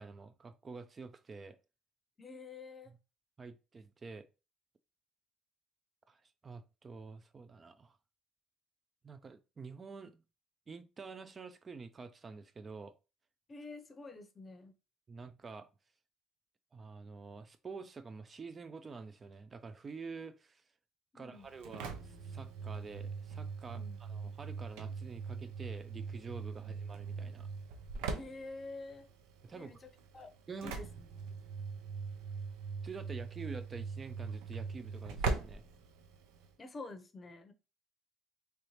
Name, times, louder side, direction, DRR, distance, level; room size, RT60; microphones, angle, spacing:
voice 1, 0.0-1.6 2.9-3.0 3.4-4.3 6.1-8.0 9.0-10.2 10.7-13.0 15.1-15.7 16.7-20.6 21.1-27.5 29.4-29.8 30.5-30.8 32.8-35.6, right 4 dB, 30° right, 0.3 m, -48 dB
voice 2, 2.2-2.9 13.5-14.7 21.1-21.5 23.7-24.0 26.6-26.7 28.1-29.1 29.5-30.3 30.6-30.9 36.6-37.5, left 3 dB, 30° left, 0.6 m, -48 dB
Engine / Slam, 21.4-36.5, right 4 dB, 90° right, 0.5 m, -41 dB
3.1 x 2.7 x 3.1 m
cardioid pair, 95°, 0 cm